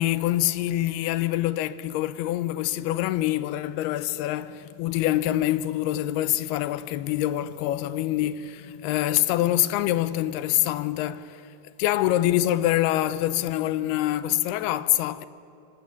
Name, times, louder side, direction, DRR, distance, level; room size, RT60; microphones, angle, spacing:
voice 1, 0.0-11.4 11.8-15.3, left 14 dB, 80° left, 2.5 m, -25 dB
24.5 x 17.5 x 9.4 m
omnidirectional pair, 4.8 m